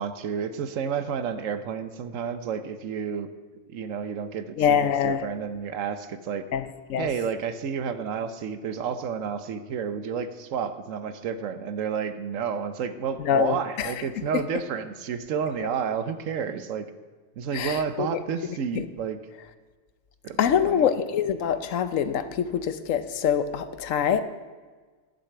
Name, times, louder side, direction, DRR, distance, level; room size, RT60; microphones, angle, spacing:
voice 1, 0.0-3.3 3.7-6.5 7.0-16.8 17.4-19.2 20.2-20.9, right 7 dB, 80° right, 11 dB, 1.2 m, -31 dB
voice 2, 4.6-5.3 6.5-6.6 6.9-7.1 13.2-13.9 17.5-18.2 18.7-18.9 20.4-24.2, left 8 dB, 85° left, 12 dB, 1.1 m, -24 dB
11.5 x 6.7 x 7.8 m, 1.4 s
omnidirectional pair, 1.3 m